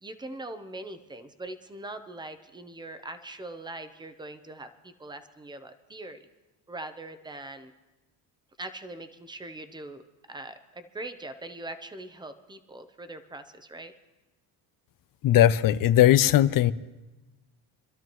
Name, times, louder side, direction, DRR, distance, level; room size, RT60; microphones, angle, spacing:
voice 1, 0.0-6.3 6.7-7.7 8.6-10.0 10.3-13.9, right 2 dB, 10° right, 0.7 m, -41 dB
voice 2, 15.2-16.7, left 12 dB, 50° left, 0.5 m, -19 dB
25.0 x 12.5 x 3.1 m
cardioid pair, 125°, 44 cm